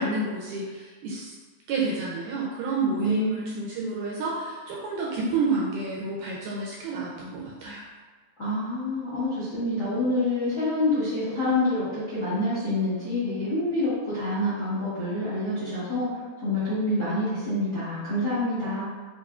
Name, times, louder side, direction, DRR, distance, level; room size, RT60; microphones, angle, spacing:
voice 1, 0.0-1.3 1.7-7.8, right 3 dB, 80° right, -4 dB, 1.9 m, -29 dB
voice 2, 3.0-3.6 8.4-18.8, left 1 dB, 50° left, -13 dB, 1.3 m, -27 dB
6.4 x 2.6 x 2.4 m, 1.4 s
omnidirectional pair, 4.0 m